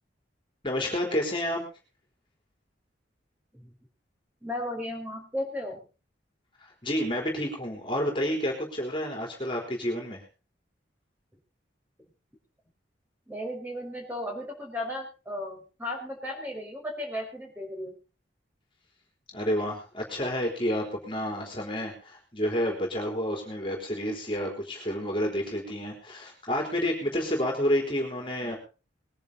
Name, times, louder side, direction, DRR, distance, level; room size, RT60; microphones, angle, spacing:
voice 1, 0.6-1.6 6.6-10.2 19.3-28.6, equal, 30° left, 1 dB, 3.9 m, -30 dB
voice 2, 4.4-5.8 13.3-18.0, left 1 dB, 10° right, 1 dB, 5.3 m, -35 dB
21.0 x 10.5 x 4.1 m, 0.34 s
head